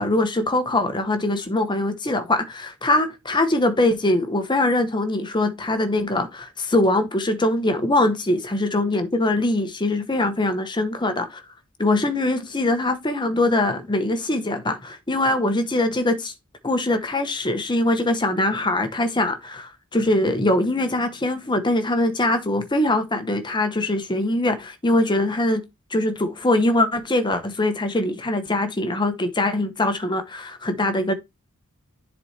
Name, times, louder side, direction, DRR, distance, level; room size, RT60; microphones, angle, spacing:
voice 1, 0.0-11.4 11.8-16.3 16.6-25.6 25.9-31.1, left 1 dB, 20° left, 1.0 m, -22 dB
10.5 x 4.2 x 3.3 m
head